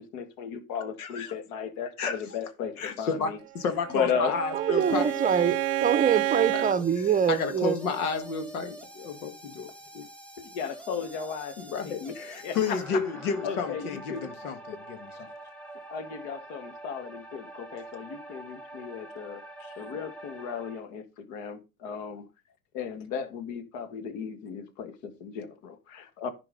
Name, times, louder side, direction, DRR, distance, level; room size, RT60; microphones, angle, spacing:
voice 1, 0.0-3.4 3.9-4.4 10.4-11.6 11.8-12.2 12.4-13.0 13.4-14.3 15.9-19.4 19.8-22.3 22.7-26.3, left 6 dB, 65° left, 2.1 m, -35 dB
voice 2, 1.0-1.3 2.0-2.2 2.8-5.1 6.5-6.6 7.0-10.1 11.6-15.3 19.6-19.7, left 5 dB, 85° left, 1.9 m, -32 dB
Bowed string instrument, 3.6-6.8, right 22 dB, 70° right, 0.5 m, -30 dB
voice 3, 4.5-7.8, right 7 dB, 20° right, 0.7 m, -25 dB
sound 1, 4.8-20.8, equal, 5° left, 1.3 m, -44 dB
11.0 x 4.7 x 5.3 m
supercardioid pair, 110°, 43 cm